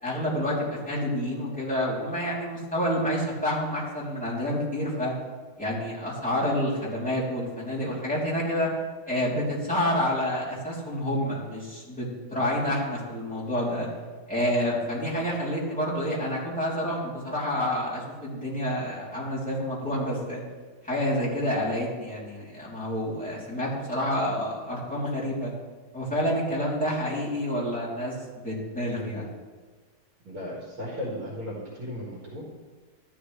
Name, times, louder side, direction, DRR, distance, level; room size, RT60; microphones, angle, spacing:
voice 1, 0.0-5.1 5.6-8.7 9.1-13.9 14.3-20.4 20.8-25.5 25.9-29.3, equal, 5° left, -7 dB, 3.1 m, -28 dB
voice 2, 30.2-32.4, left 1 dB, 75° right, -6 dB, 2.9 m, -35 dB
13.0 x 11.0 x 3.3 m, 1.4 s
omnidirectional pair, 2.3 m